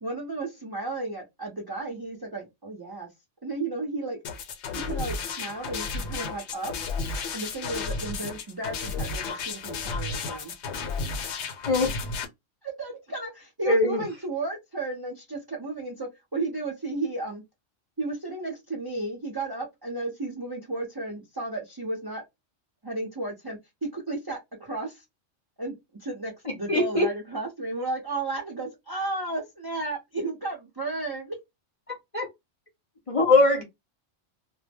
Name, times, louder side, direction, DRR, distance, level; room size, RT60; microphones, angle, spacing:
voice 1, 0.0-3.1 3.4-4.2 4.8-6.7 7.3-10.5 12.6-17.4 18.0-22.2 22.8-25.0 25.6-25.7 26.0-31.4, right 2 dB, 30° right, 0.4 m, -33 dB
sound 1, 4.2-12.3, left 4 dB, 70° left, 0.9 m, -33 dB
voice 2, 11.7-12.1 13.6-14.0 26.7-27.1 31.9-32.3 33.1-33.6, left 2 dB, 35° left, 0.6 m, -22 dB
2.1 x 2.0 x 3.3 m
omnidirectional pair, 1.3 m